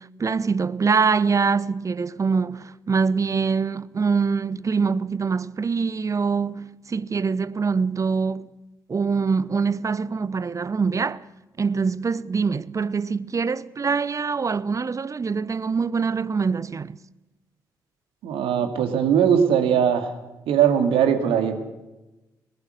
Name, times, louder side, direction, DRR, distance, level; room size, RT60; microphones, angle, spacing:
voice 1, 0.0-8.5 8.9-11.2 11.6-17.0, right 5 dB, 30° right, 0.7 m, -24 dB
voice 2, 18.2-20.1 20.5-21.7, right 8 dB, 60° right, 2.2 m, -20 dB
21.0 x 20.0 x 6.5 m
figure-of-eight pair, 40°, 10 cm